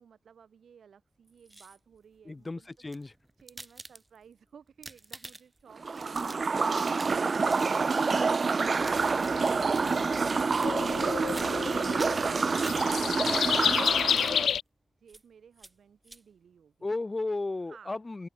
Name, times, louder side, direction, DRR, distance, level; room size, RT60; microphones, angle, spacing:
voice 1, 0.0-2.7 3.4-14.1 15.0-16.9 17.6-18.0, right 7 dB, 70° right, 3.8 m, -58 dB
sound 1, 1.3-2.0 2.7-4.3 4.7-5.6 6.0-7.2 7.5-7.7 8.6-9.9 10.5-11.0 11.3-11.7 12.0-13.2 13.7-14.4 15.1-15.2 15.6-15.7 16.0-16.2, right 2 dB, 15° right, 0.9 m, -47 dB
voice 2, 2.3-3.1 16.8-18.3, left 2 dB, 25° left, 0.5 m, -34 dB
sound 2, 5.8-14.5, right 4 dB, 40° right, 0.3 m, -27 dB
sound 3, 8.8-14.6, left 8 dB, 85° left, 0.6 m, -31 dB
open air
wide cardioid pair, 120°, 0 cm